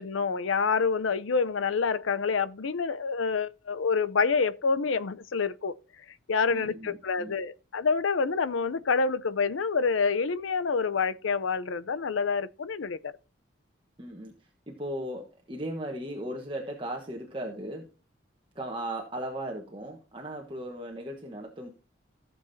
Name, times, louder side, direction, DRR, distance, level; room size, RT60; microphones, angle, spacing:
voice 1, 0.0-5.8 6.3-13.2, left 5 dB, 80° left, 0.6 m, -27 dB
voice 2, 6.5-7.3 14.0-14.3 14.7-17.9 18.5-21.7, right 1 dB, 25° right, 1.3 m, -37 dB
15.0 x 7.2 x 2.7 m
head